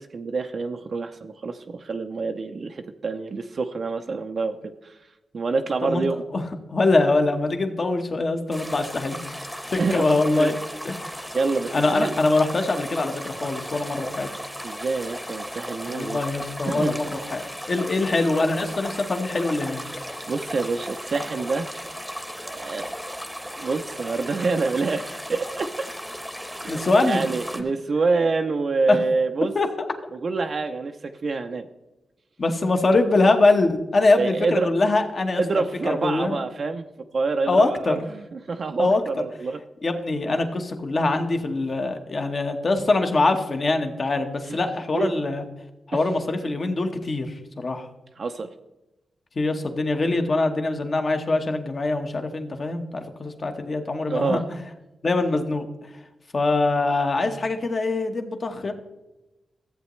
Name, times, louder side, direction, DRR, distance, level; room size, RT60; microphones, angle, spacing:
voice 1, 0.0-5.0 5.3-6.2 9.8-10.0 10.4-10.5 11.3-12.1 14.6-16.2 16.7-17.0 20.3-21.7 22.4-22.9 23.6-25.7 26.6-29.5 30.1-31.7 34.2-34.7 35.4-36.9 37.1-39.6 44.5-44.6 44.9-45.1 45.9-46.0 48.2-48.5 54.1-54.4, right 4 dB, 55° right, 5 dB, 0.5 m, -26 dB
voice 2, 6.7-10.6 10.8-11.3 11.7-14.3 15.9-19.8 26.7-27.3 28.9-29.0 29.5-29.7 32.4-36.4 37.5-38.0 38.8-39.0 39.8-45.4 45.9-47.9 49.3-54.6 55.0-55.7 56.3-58.7, left 2 dB, 50° left, 5 dB, 1.1 m, -23 dB
sound 1, 8.5-27.6, equal, ahead, 0.9 m, -36 dB
14.0 x 8.1 x 3.1 m, 1.0 s
cardioid pair, 80°, 0 cm